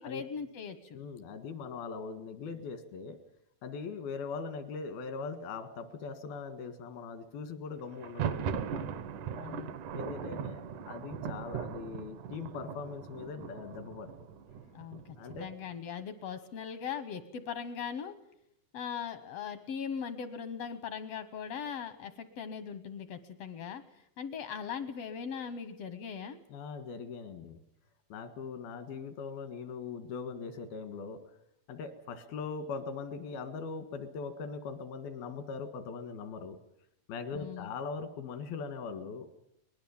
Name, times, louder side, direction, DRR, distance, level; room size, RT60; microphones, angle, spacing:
voice 1, 0.0-1.0 9.3-9.8 14.7-15.0 15.4-18.1 18.7-23.8 24.2-26.4 37.3-37.7, left 7 dB, 75° left, 12 dB, 1.5 m, -39 dB
voice 2, 0.9-3.2 3.6-8.6 9.9-10.6 10.9-14.1 15.2-15.5 26.5-27.6 28.1-31.2 31.7-36.6 37.1-39.4, left 5 dB, 90° left, 10 dB, 3.7 m, -40 dB
Thunder, 7.9-15.7, right 7 dB, 70° right, 2.4 m, -39 dB
23.0 x 20.0 x 7.2 m, 0.74 s
omnidirectional pair, 4.2 m